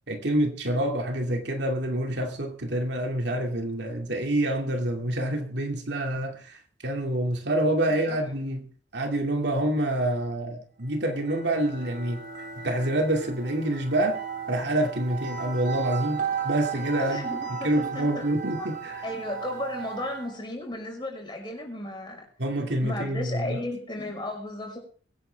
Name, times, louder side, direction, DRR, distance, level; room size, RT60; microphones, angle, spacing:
voice 1, 0.1-6.6 6.8-8.6 8.9-12.2 12.6-14.2 14.5-17.2 17.6-19.0 22.4-23.6, right 1 dB, 65° right, 3 dB, 2.4 m, -27 dB
voice 2, 7.9-8.2 17.0-18.3 18.6-18.7 19.0-22.2 22.8-24.8, left 1 dB, 25° left, 0 dB, 5.5 m, -35 dB
sound 1, 10.9-20.4, right 7 dB, 50° right, 2.8 m, -35 dB
23.5 x 9.5 x 3.5 m, 0.43 s
head